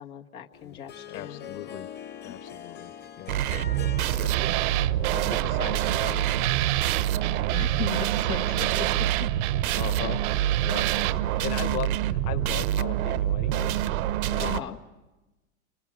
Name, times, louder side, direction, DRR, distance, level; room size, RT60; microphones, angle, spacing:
voice 1, 0.0-1.5 2.3-2.4 4.1-4.2 7.5-9.1 10.9-11.4 14.4-14.8, left 8 dB, 85° left, 2 dB, 1.8 m, -37 dB
Harp, 0.5-6.3, left 8 dB, 25° left, 1.0 m, -43 dB
voice 2, 0.6-1.9 2.2-3.4 4.2-4.3 5.1-6.7 7.1-7.2 7.8-8.0 9.7-10.2 10.6-10.8 11.3-13.8 14.2-14.7, left 13 dB, 45° left, 10 dB, 1.4 m, -38 dB
sound 1, 3.3-14.6, right 12 dB, 75° right, 1.0 m, -26 dB
sound 2, 4.3-11.1, right 19 dB, 55° right, 0.8 m, -31 dB
29.5 x 24.5 x 7.7 m, 1.1 s
hypercardioid pair, 105°, 43 cm